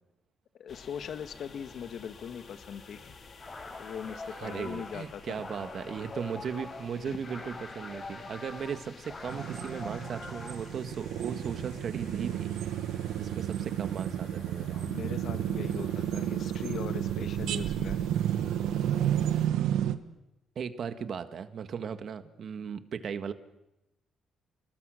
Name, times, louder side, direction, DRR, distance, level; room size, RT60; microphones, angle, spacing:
voice 1, 0.6-3.2 3.8-5.4 7.1-7.2 14.7-18.1, left 8 dB, 65° left, 10 dB, 1.6 m, -40 dB
sound 1, 0.7-19.5, left 4 dB, 45° left, 3.9 m, -52 dB
sound 2, 3.3-10.8, left 3 dB, 30° left, 4.5 m, -44 dB
voice 2, 4.2-12.5 12.9-14.8 20.6-23.3, right 7 dB, 60° right, 10 dB, 1.6 m, -37 dB
sound 3, 9.3-19.9, right 11 dB, 85° right, 1.3 m, -31 dB
30.0 x 20.5 x 6.5 m, 0.94 s
cardioid pair, 90°, 0 cm